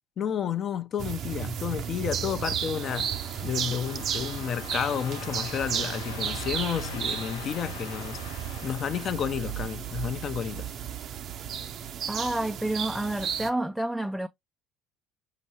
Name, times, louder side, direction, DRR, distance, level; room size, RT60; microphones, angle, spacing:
voice 1, 0.2-3.2 3.4-8.2 8.6-10.7, left 8 dB, 45° left, 0.6 m, -31 dB
sound 1, 1.0-13.5, right 9 dB, 55° right, 0.6 m, -34 dB
Worrying Transition, 1.9-10.4, left 7 dB, 90° left, 0.6 m, -43 dB
voice 2, 12.1-14.3, right 1 dB, 5° right, 0.3 m, -29 dB
5.3 x 3.0 x 2.8 m
supercardioid pair, 85°, 0 cm